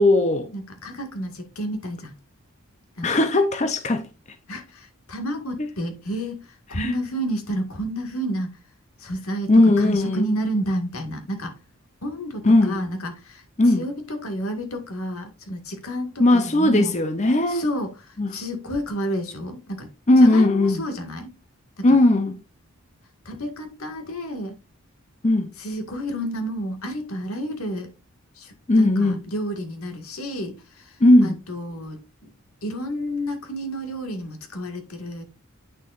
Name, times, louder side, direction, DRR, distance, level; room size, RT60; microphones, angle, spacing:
voice 1, 0.0-0.5 3.0-4.1 6.7-7.0 9.5-10.3 12.4-12.9 13.6-13.9 16.2-17.6 18.2-18.4 20.1-20.9 21.8-22.4 25.2-25.5 28.7-29.2 31.0-31.4, left 1 dB, 30° left, 0.6 m, -18 dB
voice 2, 0.5-2.1 3.0-3.2 4.5-8.5 9.0-11.6 12.0-13.4 13.8-16.9 17.5-19.9 20.2-21.3 21.8-22.0 23.3-24.6 25.6-27.9 28.4-32.3 32.6-35.2, equal, 80° left, 1.8 m, -30 dB
8.8 x 6.6 x 2.5 m
head